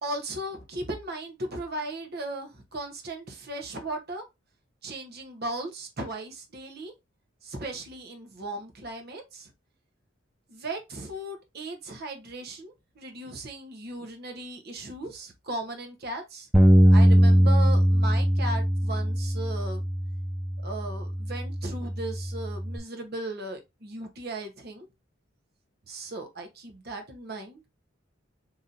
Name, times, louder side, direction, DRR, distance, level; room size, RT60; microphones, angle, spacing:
voice 1, 0.0-4.2 4.8-6.9 7.4-9.5 10.5-16.5 16.9-19.9 20.6-24.9 25.9-27.6, right 2 dB, 55° right, 1.0 m, -37 dB
Bass guitar, 16.5-22.8, equal, 5° right, 0.4 m, -21 dB
3.0 x 2.7 x 3.8 m
head